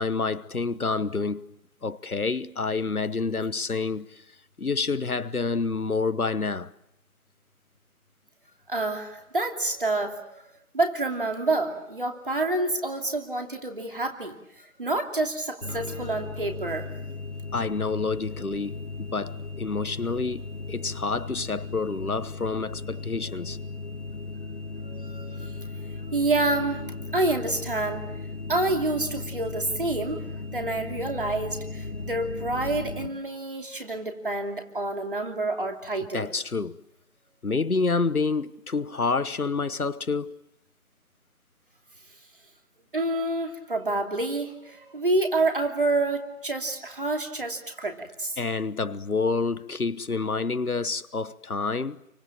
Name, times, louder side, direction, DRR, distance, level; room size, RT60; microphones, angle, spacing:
voice 1, 0.0-1.4 1.8-4.2 4.6-6.7 17.5-23.6 36.1-36.8 37.4-40.4 48.4-52.0, left 4 dB, 85° left, 1.2 m, -28 dB
voice 2, 8.7-16.9 23.2-23.3 24.8-25.5 26.1-26.8 27.1-28.1 28.5-30.3 30.5-36.3 42.9-48.4, right 2 dB, 35° right, 2.9 m, -28 dB
sound 1, 15.6-33.1, left 3 dB, 55° left, 2.5 m, -36 dB
28.5 x 24.5 x 7.4 m
figure-of-eight pair, 170°, 43 cm